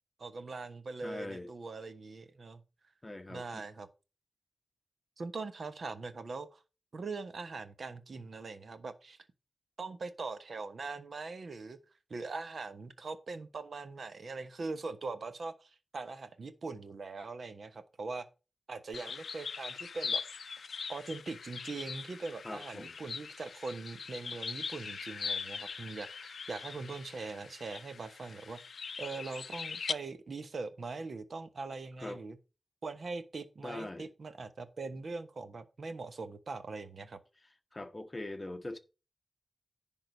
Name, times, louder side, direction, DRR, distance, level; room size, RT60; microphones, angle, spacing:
voice 1, 0.2-2.6 3.3-3.9 5.2-6.6 6.9-9.2 9.8-11.8 12.1-18.3 18.7-20.2 20.9-28.6 29.0-32.4 32.8-37.2, right 3 dB, 60° right, 1.1 m, -41 dB
voice 2, 1.0-1.5 3.0-3.6 22.4-22.9 32.0-32.2 33.6-34.1 37.7-38.8, left 2 dB, 20° left, 1.0 m, -42 dB
sound 1, 18.9-29.9, left 5 dB, 75° left, 0.4 m, -41 dB
10.5 x 3.8 x 6.5 m
wide cardioid pair, 120°, 0 cm